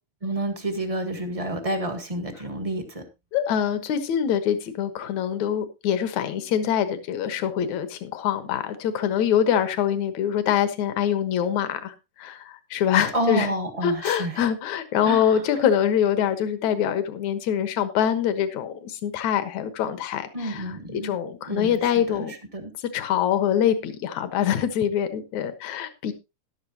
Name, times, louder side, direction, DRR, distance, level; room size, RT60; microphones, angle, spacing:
voice 1, 0.2-3.0 13.1-14.4 15.0-15.4 20.3-21.2 21.5-22.7, right 1 dB, 20° right, 6 dB, 0.9 m, -29 dB
voice 2, 3.3-13.5 13.8-20.6 20.9-22.3 22.9-26.1, left 9 dB, 65° left, 10 dB, 2.5 m, -24 dB
13.5 x 11.5 x 2.9 m, 0.25 s
omnidirectional pair, 3.6 m